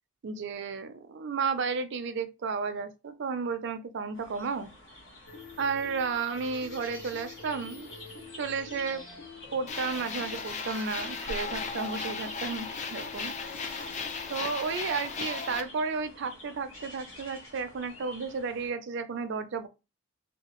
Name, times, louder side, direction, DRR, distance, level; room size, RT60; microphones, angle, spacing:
voice 1, 0.2-4.7 5.6-8.0 8.3-9.1 9.5-13.3 14.3-19.7, right 5 dB, 60° right, 0.4 m, -33 dB
sound 1, 4.1-18.7, left 1 dB, 75° left, 1.2 m, -49 dB
sound 2, 5.3-14.6, left 4 dB, 60° left, 0.8 m, -47 dB
sound 3, 9.7-15.6, left 4 dB, 35° left, 0.4 m, -36 dB
2.8 x 2.3 x 3.0 m
head